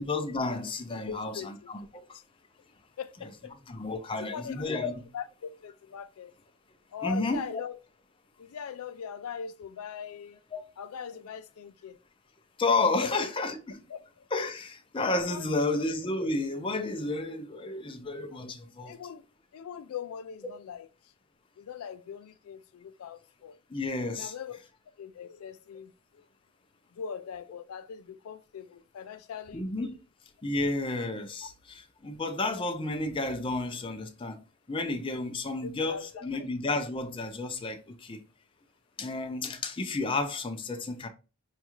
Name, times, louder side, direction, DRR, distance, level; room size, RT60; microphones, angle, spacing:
voice 1, 0.0-2.0 3.7-4.9 7.0-7.6 10.5-10.6 12.6-13.8 14.3-19.0 23.7-24.3 29.5-30.0 30.4-38.2 39.0-41.1, left 2 dB, 25° left, 0.5 m, -31 dB
voice 2, 1.1-1.5 2.1-2.2 3.0-3.5 4.2-4.8 5.1-6.3 6.9-7.8 8.4-10.4 10.8-12.0 13.0-13.1 13.9-14.3 15.3-15.6 18.3-18.4 18.8-19.2 19.5-20.9 21.6-23.6 24.1-24.6 25.0-26.2 26.9-29.6 35.9-36.4, left 7 dB, 85° left, 0.3 m, -41 dB
5.3 x 2.4 x 3.0 m
head